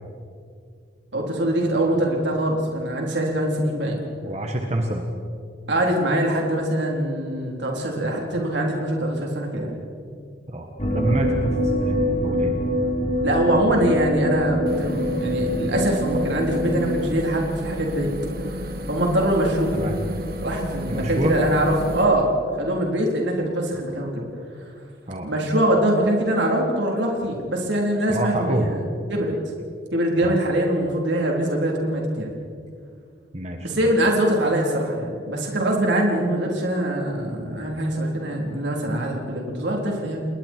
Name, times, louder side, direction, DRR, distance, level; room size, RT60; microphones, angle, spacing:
voice 1, 1.1-4.0 5.7-9.7 13.2-18.1 18.9-19.7 20.4-22.3 22.6-24.2 25.2-28.8 29.1-29.4 29.9-32.3 33.6-40.3, right 1 dB, 70° right, 0 dB, 3.9 m, -23 dB
voice 2, 4.2-5.0 10.5-12.0 12.2-12.5 19.7-20.0 20.9-21.3 25.1-25.3 28.1-28.7 30.2-30.4 33.3-33.9, right 1 dB, 35° right, 3 dB, 1.6 m, -27 dB
sound 1, 10.8-17.1, equal, 35° left, 3.4 m, -24 dB
sound 2, 14.7-22.0, left 1 dB, 50° right, 2.3 m, -32 dB
30.0 x 21.0 x 4.7 m, 2.3 s
head